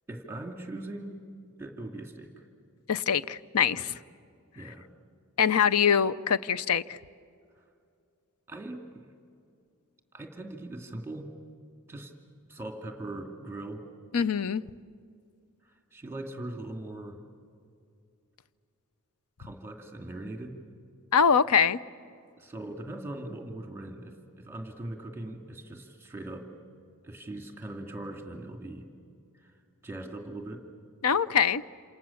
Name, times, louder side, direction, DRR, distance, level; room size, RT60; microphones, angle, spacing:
voice 1, 0.1-1.2 1.6-2.5 3.8-4.0 4.6-4.9 8.5-9.1 10.1-11.3 11.9-12.1 12.5-13.9 15.6-17.2 19.4-20.6 22.4-26.5 27.0-28.8 29.4-29.5 29.8-30.6, right 1 dB, 10° right, 3 dB, 2.4 m, -40 dB
voice 2, 2.9-3.9 5.4-7.0 14.1-14.6 21.1-21.8 31.0-31.6, left 7 dB, 80° left, 15 dB, 0.7 m, -24 dB
28.5 x 27.5 x 7.2 m, 2.4 s
head